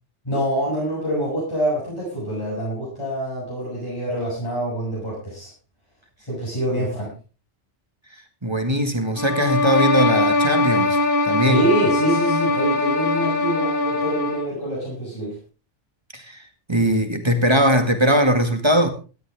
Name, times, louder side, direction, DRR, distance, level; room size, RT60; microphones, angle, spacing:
voice 1, 0.2-5.5 6.3-7.1 11.5-15.4, right 1 dB, 25° left, 8.0 m, -25 dB
voice 2, 8.1-11.6 16.1-18.9, equal, 25° right, 2.1 m, -20 dB
sound 1, 9.2-14.6, left 2 dB, 50° left, 1.8 m, -21 dB
17.0 x 14.0 x 3.6 m
omnidirectional pair, 1.2 m